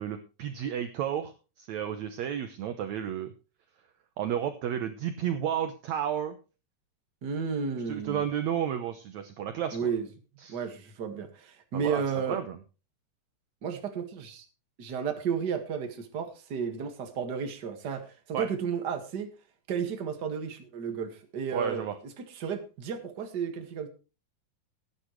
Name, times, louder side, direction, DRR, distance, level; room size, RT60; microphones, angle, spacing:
voice 1, 0.0-3.3 4.2-6.4 7.9-9.9 10.4-10.6 11.7-12.0 12.3-12.6 18.3-18.5 21.5-21.9, right 9 dB, 65° right, 8 dB, 1.9 m, -32 dB
voice 2, 7.2-8.2 9.7-10.1 10.5-12.4 13.6-14.5 14.8-19.3 19.7-23.9, right 6 dB, 35° right, 6 dB, 1.9 m, -33 dB
18.5 x 9.8 x 3.2 m, 0.32 s
omnidirectional pair, 4.0 m